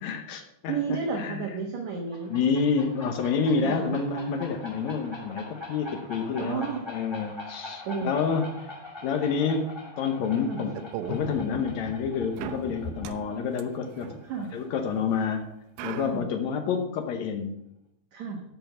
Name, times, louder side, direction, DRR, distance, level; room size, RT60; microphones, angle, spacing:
voice 1, 0.0-1.5 2.3-8.6 9.0-10.8 11.1-15.4 15.8-17.5, left 6 dB, 80° left, 5 dB, 1.6 m, -28 dB
voice 2, 0.7-2.3 3.5-3.9 6.4-6.8 7.9-8.1 10.5-10.6 14.3-14.5 16.1-16.3 18.1-18.4, right 5 dB, 60° right, 1 dB, 2.0 m, -31 dB
sound 1, 1.9-15.3, left 2 dB, 10° left, 1.6 m, -44 dB
sound 2, 10.7-11.2 12.4-15.0 15.8-16.2, right 12 dB, 80° right, 2.4 m, -39 dB
sound 3, 11.0-13.3, left 3 dB, 65° left, 2.6 m, -38 dB
13.0 x 5.9 x 5.6 m, 0.81 s
omnidirectional pair, 4.5 m